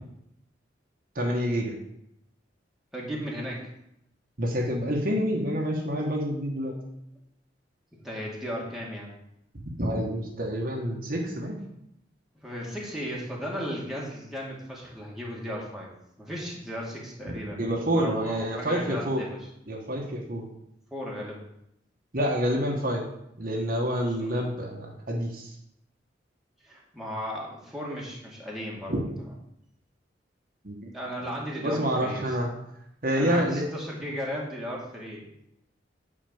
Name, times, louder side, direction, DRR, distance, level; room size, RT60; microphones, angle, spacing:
voice 1, 1.1-1.7 4.4-6.8 9.5-11.6 17.6-19.2 19.7-20.5 22.1-23.0 23.4-25.5 28.9-29.0 30.6-30.9 31.6-32.5 33.0-33.7, equal, 50° right, 0 dB, 1.5 m, -28 dB
voice 2, 2.9-3.7 8.0-9.1 12.4-15.9 16.2-19.5 20.9-21.4 24.2-24.3 26.6-28.9 30.9-32.4 33.1-35.4, equal, ahead, -4 dB, 2.2 m, -35 dB
9.1 x 4.5 x 7.1 m, 0.78 s
head